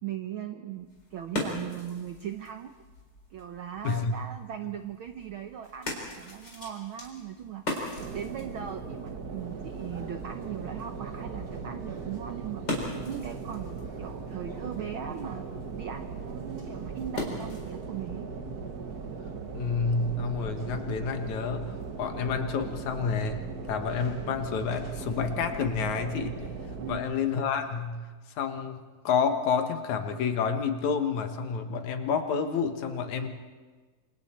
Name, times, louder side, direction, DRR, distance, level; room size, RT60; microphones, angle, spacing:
voice 1, 0.0-2.7 3.3-7.6 8.1-12.6 13.0-15.5 15.8-18.3 26.8-27.1, right 9 dB, 80° right, 7 dB, 1.1 m, -39 dB
sound 1, 0.7-17.9, left 1 dB, 35° left, 4.7 m, -41 dB
voice 2, 3.8-4.2 19.5-21.7 22.0-23.4 23.7-26.4 26.9-28.0 28.4-28.8 29.0-33.3, left 5 dB, 75° left, 6 dB, 2.7 m, -29 dB
Computer Generated Wind, 8.0-27.0, right 5 dB, 45° right, 1.3 m, -38 dB
sound 2, 9.4-27.9, right 1 dB, 25° right, 7.5 m, -55 dB
27.5 x 27.0 x 4.4 m, 1.4 s
omnidirectional pair, 3.5 m